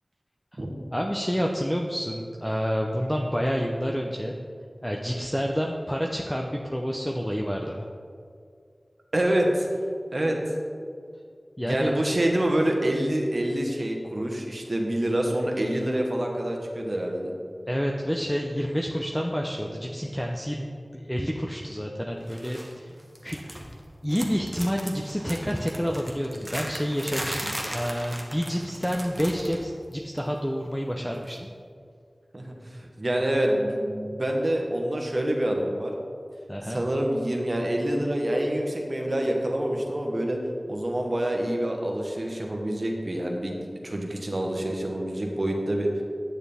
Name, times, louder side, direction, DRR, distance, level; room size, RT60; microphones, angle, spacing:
voice 1, 0.9-4.3 4.8-7.9 11.6-11.9 17.7-20.7 20.9-22.9 23.2-23.4 24.0-31.5 36.5-36.8, equal, 5° left, 0 dB, 0.6 m, -29 dB
voice 2, 9.1-9.7 10.1-10.4 11.7-17.3 32.3-36.0 36.6-40.4 40.6-45.9, right 1 dB, 55° right, 1 dB, 1.2 m, -26 dB
sound 1, 22.3-22.7 23.0-23.8 24.1-29.7 29.9-30.2 31.3-31.4, equal, 15° right, 1.1 m, -37 dB
9.1 x 6.6 x 3.5 m, 2.3 s
wide cardioid pair, 40°, 0 cm